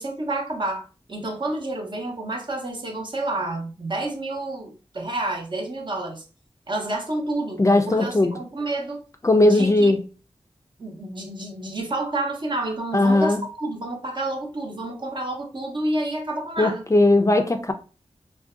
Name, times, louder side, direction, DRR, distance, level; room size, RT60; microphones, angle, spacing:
voice 1, 0.0-6.2 6.7-9.0 9.4-9.9 10.8-16.8, right 2 dB, 45° right, 0.7 m, -29 dB
voice 2, 7.6-8.3 9.2-10.0 12.9-13.4 16.6-17.7, left 2 dB, 30° left, 0.3 m, -18 dB
2.5 x 2.2 x 2.3 m
cardioid pair, 50°, 11 cm